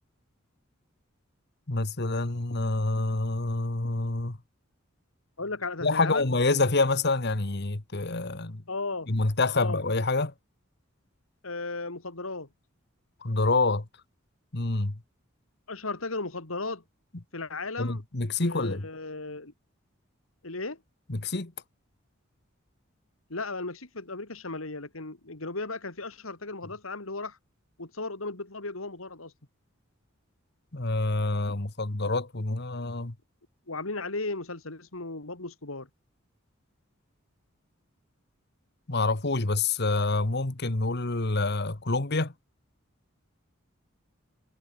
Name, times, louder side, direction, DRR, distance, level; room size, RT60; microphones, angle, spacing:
voice 1, 1.7-4.4 5.8-8.6 9.1-10.3 13.2-13.8 14.5-15.0 17.8-18.9 21.1-21.5 30.7-33.1 38.9-42.3, left 3 dB, 55° left, 1.6 m, -27 dB
voice 2, 5.4-6.2 8.7-9.1 9.5-9.8 11.4-12.5 15.7-16.8 17.3-18.0 18.4-19.5 20.4-20.8 23.3-27.4 27.8-29.3 33.7-35.9, left 3 dB, 90° left, 2.9 m, -35 dB
head